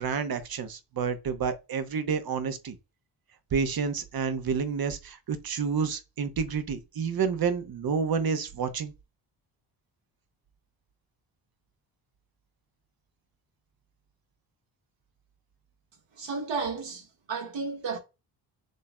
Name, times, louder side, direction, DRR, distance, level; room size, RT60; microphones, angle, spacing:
voice 1, 0.0-2.8 3.5-8.9, right 6 dB, 50° right, 1.0 m, -29 dB
voice 2, 16.2-18.0, right 4 dB, 65° right, 1.7 m, -33 dB
6.5 x 3.5 x 2.2 m
supercardioid pair, 60°, 47 cm